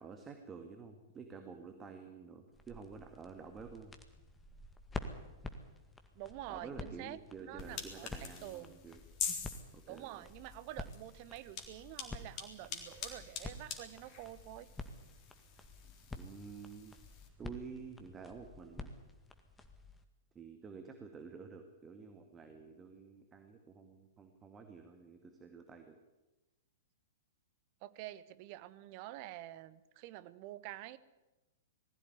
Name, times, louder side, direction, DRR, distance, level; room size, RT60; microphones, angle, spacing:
voice 1, 0.0-3.9 6.5-9.0 9.7-10.2 16.2-17.0 17.4-18.9 20.3-26.0, right 5 dB, 20° right, 5 dB, 2.1 m, -50 dB
sound 1, 2.5-20.0, left 2 dB, 10° left, 2.0 m, -50 dB
voice 2, 6.1-8.1 8.4-8.8 9.9-14.7 27.8-31.0, right 15 dB, 40° right, 15 dB, 1.1 m, -48 dB
sound 2, 7.6-17.3, left 7 dB, 35° left, 3.8 m, -46 dB
20.5 x 15.0 x 9.7 m, 1.1 s
figure-of-eight pair, 105°, 0 cm